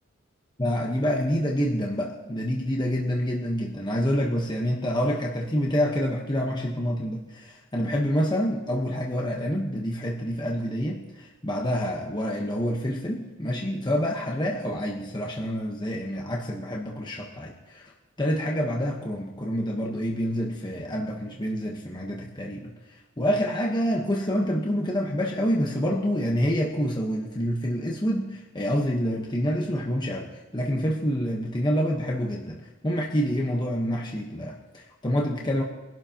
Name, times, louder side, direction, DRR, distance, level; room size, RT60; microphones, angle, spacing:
voice 1, 0.6-17.9 18.2-35.6, equal, 20° left, -1 dB, 1.2 m, -27 dB
23.0 x 12.0 x 3.0 m, 1.1 s
head